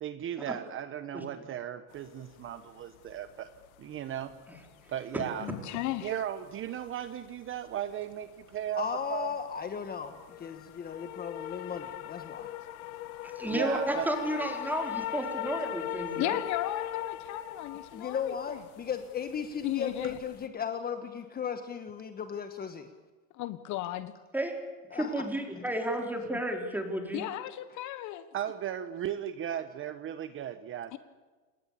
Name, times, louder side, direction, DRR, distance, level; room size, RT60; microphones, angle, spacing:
voice 1, 0.0-3.5 3.8-4.3 4.9-5.5 6.0-8.8 9.1-9.3 13.5-14.1 28.3-30.9, right 10 dB, 30° right, 11 dB, 1.1 m, -36 dB
sound 1, 1.9-20.4, left 13 dB, 85° left, 1.9 m, -41 dB
voice 2, 5.4-6.1 16.2-18.6 19.6-20.2 23.3-24.1 27.1-28.3 30.9-31.0, left 14 dB, 45° left, 13 dB, 1.3 m, -35 dB
voice 3, 8.8-12.5 17.9-22.9 24.9-25.2, left 7 dB, 20° left, 8 dB, 1.5 m, -36 dB
voice 4, 13.4-16.4 24.3-24.5 24.9-27.2, right 1 dB, 5° right, 3 dB, 4.5 m, -32 dB
29.0 x 20.0 x 8.6 m, 1.3 s
supercardioid pair, 140°, 42 cm